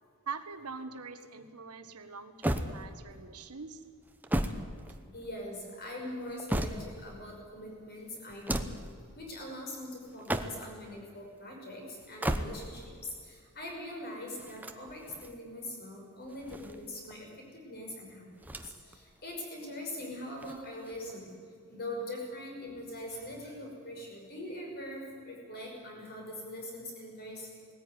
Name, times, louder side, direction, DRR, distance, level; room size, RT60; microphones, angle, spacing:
voice 1, 0.2-3.8, right 5 dB, 90° right, 8 dB, 1.5 m, -43 dB
sound 1, 2.4-3.2 4.0-5.4 6.1-7.1 8.3-8.9 10.1-10.8 12.0-12.9 14.4-15.3 16.2-17.2 18.4-19.0 19.3-19.4 20.4-21.1, right 1 dB, 10° right, 0.9 m, -35 dB
voice 2, 5.1-8.7 9.2-12.8 13.2-17.3 17.5-21.3 21.7-27.6, left 1 dB, 45° left, 0 dB, 6.0 m, -42 dB
20.0 x 14.5 x 9.6 m, 2.3 s
head